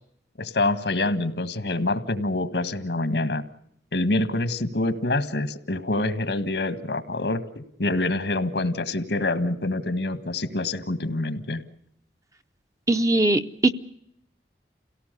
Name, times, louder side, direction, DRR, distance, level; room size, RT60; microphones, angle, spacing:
voice 1, 0.4-3.4 3.9-11.6, left 2 dB, 75° left, 12 dB, 1.7 m, -26 dB
voice 2, 12.9-13.7, right 2 dB, 20° right, 8 dB, 0.8 m, -20 dB
28.0 x 17.5 x 6.8 m, 0.73 s
head